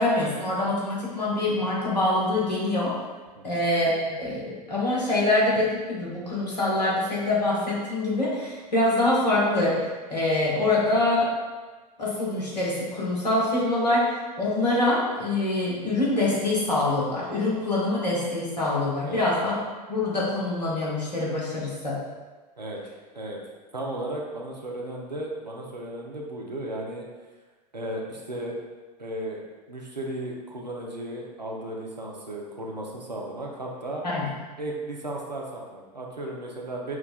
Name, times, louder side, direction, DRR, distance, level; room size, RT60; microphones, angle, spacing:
voice 1, 0.0-2.9 3.4-9.8 10.1-11.4 12.0-19.6 19.9-22.0 34.0-34.3, left 2 dB, 80° left, -6 dB, 1.2 m, -25 dB
voice 2, 23.7-27.1 27.7-28.5 29.0-29.4 29.7-34.0 34.6-37.0, right 1 dB, 85° right, -2 dB, 0.6 m, -35 dB
5.8 x 2.2 x 2.3 m, 1.3 s
figure-of-eight pair, 85°, 21 cm